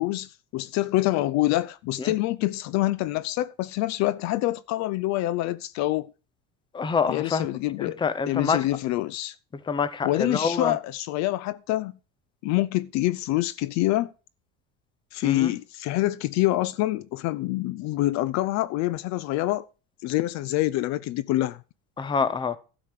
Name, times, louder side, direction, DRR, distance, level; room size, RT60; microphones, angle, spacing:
voice 1, 0.0-6.1 7.1-8.0 8.3-9.3 10.0-11.9 12.4-14.1 15.1-19.7 20.0-21.6, left 16 dB, 55° left, 0.5 m, -26 dB
voice 2, 6.7-7.5 7.8-8.6 9.7-10.8 15.2-15.5 22.0-22.6, left 5 dB, 15° left, 0.7 m, -26 dB
12.0 x 5.0 x 7.5 m
cardioid pair, 145°, 34 cm